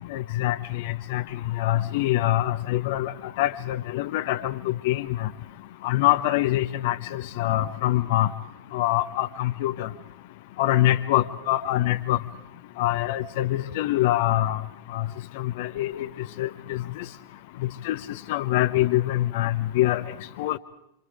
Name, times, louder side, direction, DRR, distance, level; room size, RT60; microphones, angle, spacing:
voice 1, 0.1-1.2 1.6-5.3 5.8-8.3 8.7-9.9 10.6-12.2 12.8-14.6 14.9-15.0 15.4-16.1 16.4-17.0 17.8-18.0 18.3-20.0 20.4-20.6, left 15 dB, 50° left, 10 dB, 0.8 m, -24 dB
26.5 x 26.5 x 5.0 m, 0.84 s
figure-of-eight pair, 90°, 0 cm